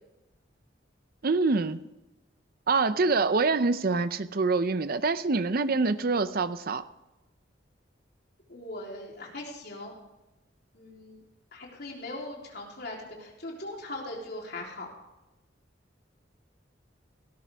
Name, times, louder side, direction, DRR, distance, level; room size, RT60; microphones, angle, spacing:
voice 1, 1.2-1.8 2.7-6.8, right 3 dB, 50° right, 13 dB, 0.6 m, -25 dB
voice 2, 8.5-10.0 10.7-11.2 11.5-14.9, left 2 dB, 60° left, -1 dB, 3.5 m, -40 dB
17.0 x 13.0 x 3.5 m, 0.99 s
head